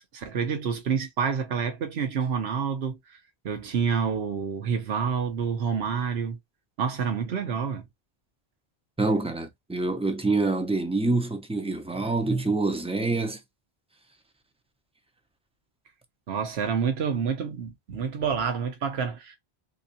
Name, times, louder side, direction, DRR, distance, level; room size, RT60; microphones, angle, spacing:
voice 1, 0.0-3.2 3.4-6.4 6.8-7.8 16.3-19.4, right 6 dB, 80° right, 1.1 m, -28 dB
voice 2, 9.0-13.4, right 3 dB, 10° right, 0.4 m, -26 dB
3.4 x 2.9 x 2.7 m
omnidirectional pair, 1.1 m